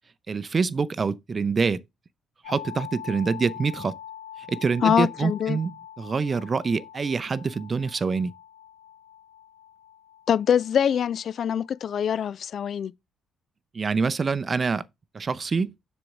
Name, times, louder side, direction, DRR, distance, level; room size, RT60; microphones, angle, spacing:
voice 1, 0.3-1.8 2.5-4.0 4.4-8.3 13.7-14.8 15.1-15.7, right 5 dB, 35° right, 0.5 m, -26 dB
sound 1, 2.4-12.2, left 10 dB, 65° left, 0.7 m, -44 dB
voice 2, 4.8-5.6 10.3-12.9, left 8 dB, 50° left, 0.3 m, -24 dB
7.6 x 6.2 x 3.5 m
figure-of-eight pair, 45°, 0 cm